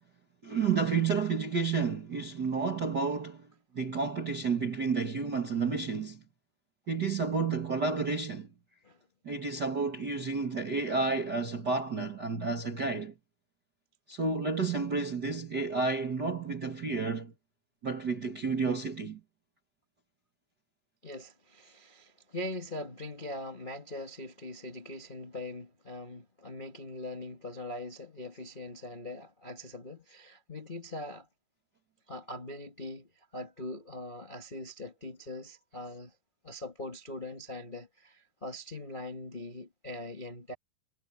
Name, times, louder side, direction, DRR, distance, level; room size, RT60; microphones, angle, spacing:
voice 1, 0.4-3.5 3.7-6.2 6.9-8.5 9.2-13.1 14.1-17.3 17.8-19.2, right 4 dB, 40° right, 1.7 m, -31 dB
voice 2, 21.0-31.3 32.1-36.1 36.4-40.5, left 1 dB, 40° left, 0.7 m, -42 dB
omnidirectional pair, 4.4 m